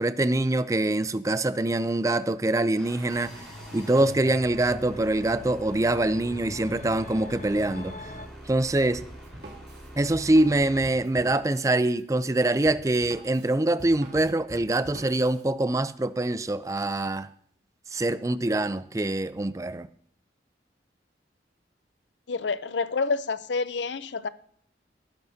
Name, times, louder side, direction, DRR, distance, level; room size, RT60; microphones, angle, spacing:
voice 1, 0.0-3.3 3.7-8.0 8.5-9.0 10.0-17.3 17.9-19.9, right 2 dB, 20° right, 14 dB, 0.4 m, -24 dB
sound 1, 2.8-10.9, right 1 dB, 5° left, 4.4 m, -45 dB
sound 2, 3.1-8.3, left 1 dB, 45° left, 1.0 m, -42 dB
Drum kit, 9.0-15.4, right 1 dB, 65° right, 2.8 m, -45 dB
voice 2, 22.3-24.3, left 4 dB, 80° left, 15 dB, 0.6 m, -28 dB
18.5 x 10.5 x 2.8 m, 0.62 s
head